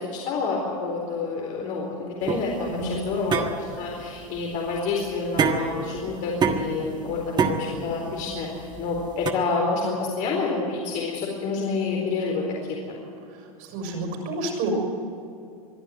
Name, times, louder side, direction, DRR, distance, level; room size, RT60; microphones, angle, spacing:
voice 1, 0.1-12.4, left 4 dB, 45° left, -2 dB, 4.4 m, -28 dB
sound 1, 2.3-9.3, right 5 dB, 25° right, 1.6 m, -28 dB
voice 2, 2.6-3.2 13.6-14.7, right 3 dB, 55° right, 2 dB, 6.4 m, -30 dB
23.0 x 12.0 x 9.5 m, 2.5 s
hypercardioid pair, 115°, 18 cm